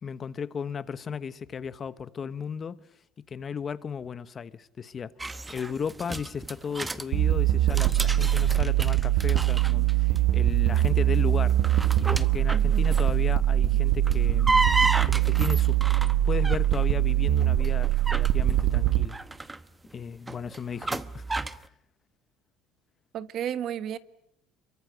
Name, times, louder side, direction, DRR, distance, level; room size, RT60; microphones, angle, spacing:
voice 1, 0.0-2.8 3.3-11.6 12.0-14.6 15.0-15.8 16.2-19.2 19.9-21.5, left 6 dB, 30° left, 1.1 m, -35 dB
sound 1, 5.2-7.1 7.5-10.2 10.5-10.9 11.4-13.3 13.9-16.8 17.4-21.7, right 2 dB, 10° right, 1.0 m, -32 dB
sound 2, 7.1-19.1, right 13 dB, 70° right, 1.2 m, -23 dB
voice 2, 12.5-12.8 23.1-24.0, right 9 dB, 50° right, 1.5 m, -33 dB
27.0 x 23.5 x 9.4 m
cardioid pair, 120°, 0 cm